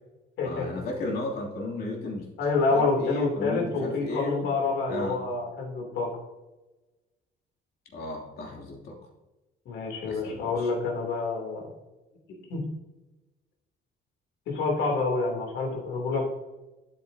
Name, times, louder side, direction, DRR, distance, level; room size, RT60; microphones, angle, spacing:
voice 1, 0.4-2.3 2.7-4.5 4.9-5.3 7.9-9.0 10.0-10.7, left 2 dB, 55° left, -2 dB, 3.0 m, -34 dB
voice 2, 2.4-6.1 9.6-11.7 12.5-12.6 14.5-16.2, left 3 dB, 75° left, 0 dB, 3.3 m, -27 dB
11.5 x 8.4 x 2.9 m, 1.1 s
cardioid pair, 145°, 19 cm